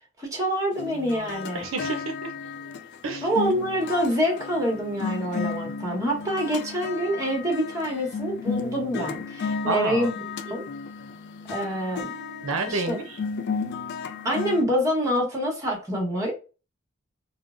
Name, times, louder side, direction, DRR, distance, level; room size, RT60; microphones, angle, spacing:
voice 1, 0.2-1.7 3.2-10.6 11.5-12.1 12.7-13.0 14.2-16.3, equal, 15° right, 1.1 m, -26 dB
sound 1, 0.7-14.6, left 5 dB, 55° left, 0.4 m, -34 dB
voice 2, 1.5-2.3 3.0-3.3 9.6-10.1 12.4-13.2, right 3 dB, 75° right, 0.6 m, -29 dB
3.6 x 2.0 x 2.4 m
head